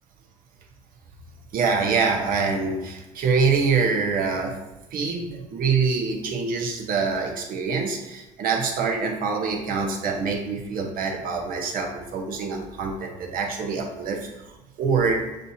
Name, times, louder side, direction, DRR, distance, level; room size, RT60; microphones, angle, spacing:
voice 1, 1.5-4.6 4.9-14.3 14.8-15.3, right 5 dB, 55° right, 2 dB, 1.0 m, -25 dB
6.5 x 2.7 x 2.8 m, 1.1 s
hypercardioid pair, 70°, 17 cm